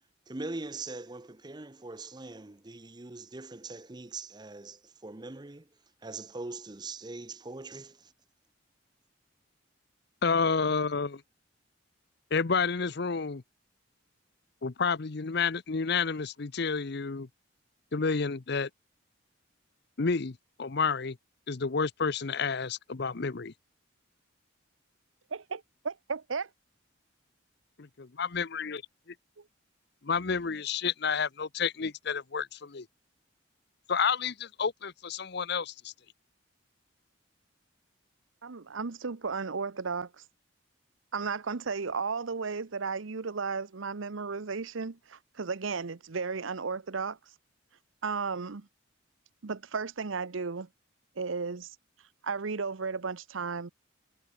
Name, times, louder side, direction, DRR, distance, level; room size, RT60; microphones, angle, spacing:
voice 1, 0.3-5.7 6.0-8.1, right 3 dB, 20° right, 0.7 m, -42 dB
voice 2, 10.2-11.2 12.3-13.4 14.6-17.3 17.9-18.7 20.0-21.2 21.5-23.5 27.8-28.8 30.0-32.9 33.9-35.9, left 5 dB, 55° left, 0.7 m, -30 dB
voice 3, 25.3-26.5 38.4-40.1 41.1-47.2 48.0-48.7 49.4-50.7 51.2-51.8 52.2-53.7, right 5 dB, 80° right, 0.8 m, -34 dB
head